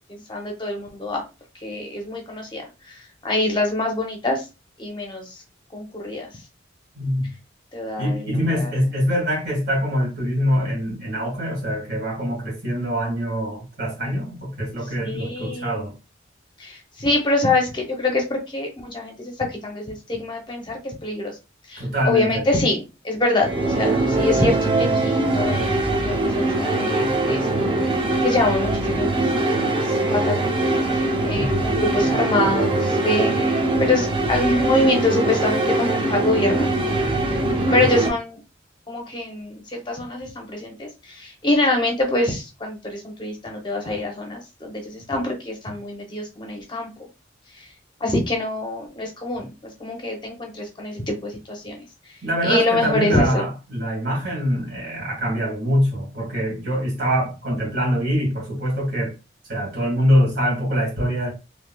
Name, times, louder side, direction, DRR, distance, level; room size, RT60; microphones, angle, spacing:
voice 1, 0.1-1.2 1.6-4.4 4.8-5.3 5.7-6.3 7.7-8.7 15.0-15.8 16.6-21.4 21.7-22.8 23.0-27.7 28.2-30.6 31.2-36.7 37.7-38.4 38.9-46.9 47.6-47.7 48.0-49.5 49.8-51.8 52.4-53.4, left 2 dB, 25° left, 0.7 m, -25 dB
voice 2, 6.9-7.3 8.0-15.9 21.8-22.5 31.3-31.6 37.8-37.9 52.2-59.1 59.5-61.3, equal, 65° right, 1.8 m, -24 dB
sound 1, 23.4-38.1, right 2 dB, 25° right, 0.5 m, -22 dB
3.2 x 2.8 x 2.2 m
head